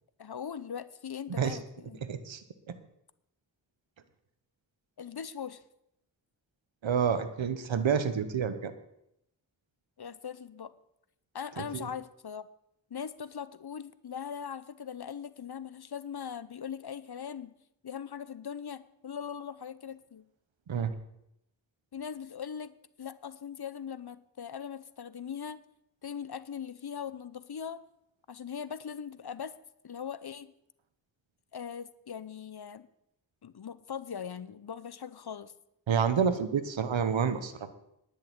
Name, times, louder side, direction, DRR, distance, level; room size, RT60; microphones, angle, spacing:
voice 1, 0.2-2.0 5.0-5.6 10.0-10.7 11.3-12.5 12.9-17.5 17.8-20.3 21.9-25.6 26.0-27.8 28.3-29.5 29.8-30.5 31.5-32.9 33.4-35.5, left 7 dB, 55° left, 15 dB, 0.8 m, -40 dB
voice 2, 2.0-2.4 2.7-2.8 6.8-8.7 11.7-11.9 20.7-20.9 35.9-37.7, right 7 dB, 90° right, 11 dB, 1.0 m, -28 dB
10.5 x 6.5 x 9.1 m, 0.80 s
cardioid pair, 45°, 44 cm